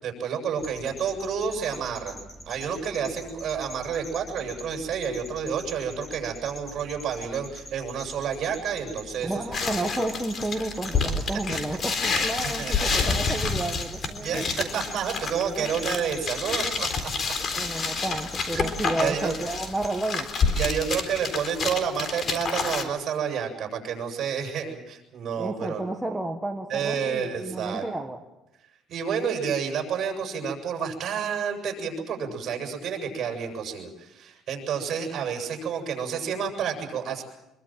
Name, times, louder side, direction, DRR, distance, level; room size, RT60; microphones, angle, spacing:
voice 1, 0.0-2.1 2.5-9.3 11.5-11.6 12.1-12.2 12.6-13.0 14.2-17.1 18.5-18.7 18.9-19.4 20.6-25.8 26.7-27.9 28.9-37.2, right 7 dB, 50° right, 3 dB, 7.6 m, -30 dB
sound 1, 0.6-19.9, left 1 dB, 25° left, 3.9 m, -44 dB
voice 2, 9.2-14.7 15.5-15.8 17.5-20.6 25.4-28.2, right 2 dB, 5° right, 2 dB, 1.6 m, -31 dB
sound 2, 9.5-22.8, left 4 dB, 40° left, 3.8 m, -28 dB
25.0 x 23.5 x 7.7 m, 0.94 s
cardioid pair, 135°, 0 cm